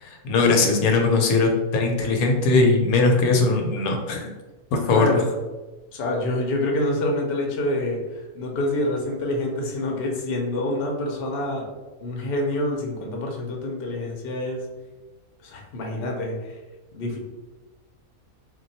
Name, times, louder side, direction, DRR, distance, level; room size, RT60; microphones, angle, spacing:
voice 1, 0.0-4.3 4.7-5.2, left 3 dB, 80° left, 3 dB, 1.0 m, -20 dB
voice 2, 4.9-5.2 5.9-11.7 12.0-14.6 15.4-16.5 16.9-17.2, left 1 dB, 55° left, 0 dB, 0.7 m, -27 dB
2.3 x 2.2 x 3.9 m, 1.2 s
omnidirectional pair, 1.5 m